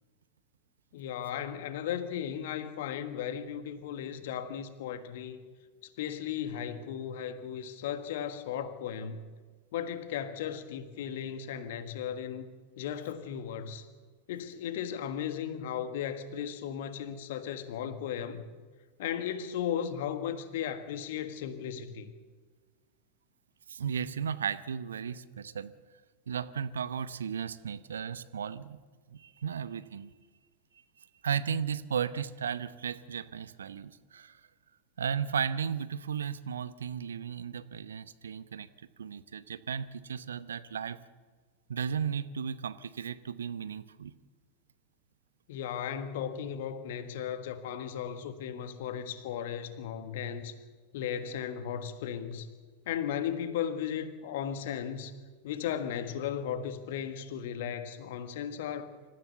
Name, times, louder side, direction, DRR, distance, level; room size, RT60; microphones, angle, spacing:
voice 1, 0.9-5.4 5.8-9.3 9.7-12.5 12.8-13.8 14.3-18.4 19.0-22.1 45.5-50.5 50.9-52.5 52.9-55.1 55.4-58.9, left 9 dB, 55° left, 11 dB, 1.6 m, -36 dB
voice 2, 23.7-25.7 26.3-28.8 29.1-30.1 31.0-34.4 35.0-38.7 39.0-41.0 41.7-44.1, right 7 dB, 65° right, 15 dB, 0.8 m, -35 dB
26.0 x 15.0 x 6.9 m, 1.5 s
figure-of-eight pair, 90°, 0 cm